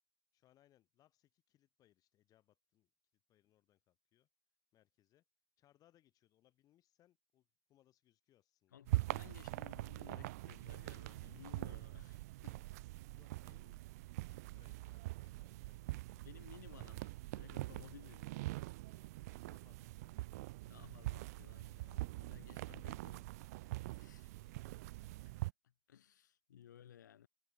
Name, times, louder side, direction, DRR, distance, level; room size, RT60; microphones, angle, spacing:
voice 1, 0.3-2.9 3.3-4.3 4.7-5.2 5.6-8.8 12.9-13.8 14.2-16.4 18.9-20.8 23.8-24.6, left 13 dB, 40° left, 3.8 m, -74 dB
voice 2, 8.7-12.6 16.1-18.4 20.7-23.3 23.5-24.3 25.0-25.4 25.9-27.3, left 10 dB, 70° left, 2.7 m, -59 dB
sound 1, 8.9-25.5, right 20 dB, 55° right, 0.4 m, -44 dB
figure-of-eight pair, 85°, 10 cm